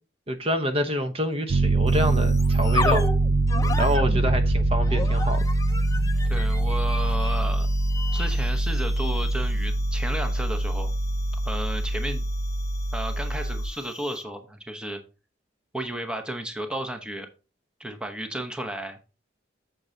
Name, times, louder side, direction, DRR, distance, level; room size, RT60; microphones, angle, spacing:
voice 1, 0.3-3.1 3.8-5.4, equal, 30° right, 0.9 m, -27 dB
Piano, 1.5-13.7, right 2 dB, 60° right, 0.5 m, -24 dB
sound 1, 1.9-14.4, left 2 dB, 15° left, 0.5 m, -35 dB
voice 2, 6.3-7.7 8.1-10.9 11.4-12.2 12.9-15.0 15.7-17.3 17.8-19.0, right 1 dB, 5° right, 0.9 m, -33 dB
8.5 x 7.4 x 2.8 m
head